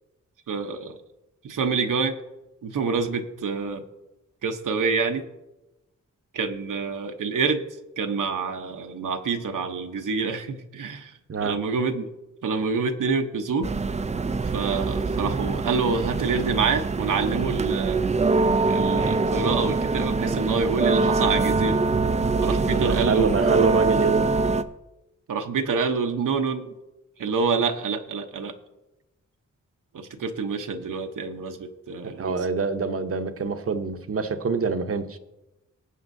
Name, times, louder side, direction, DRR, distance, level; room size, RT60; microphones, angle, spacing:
voice 1, 0.5-1.0 1.4-2.2 2.6-3.8 4.4-5.2 6.3-7.6 8.0-11.1 11.4-12.1 12.4-13.7 14.5-18.0 18.7-21.8 22.4-23.3 25.3-26.7 27.2-28.5 29.9-32.4, right 5 dB, 80° right, 5 dB, 0.8 m, -27 dB
sound 1, 13.6-24.6, right 3 dB, 25° right, 0.4 m, -24 dB
voice 2, 22.7-24.3 32.0-35.2, right 5 dB, 45° right, 8 dB, 0.8 m, -25 dB
19.0 x 8.3 x 2.6 m, 0.99 s
wide cardioid pair, 140°, 31 cm